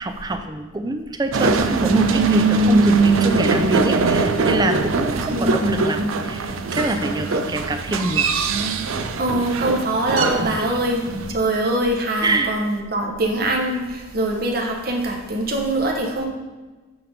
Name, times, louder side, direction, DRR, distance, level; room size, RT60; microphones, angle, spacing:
voice 1, 0.0-8.3 10.4-10.8 12.2-12.5, right 2 dB, 20° right, 6 dB, 0.4 m, -25 dB
sound 1, 1.3-11.3, right 3 dB, 80° right, 0.5 m, -21 dB
voice 2, 5.3-5.7 9.2-11.0 11.3-16.3, right 1 dB, 45° right, 1 dB, 1.0 m, -23 dB
8.6 x 3.4 x 5.1 m, 1.3 s
head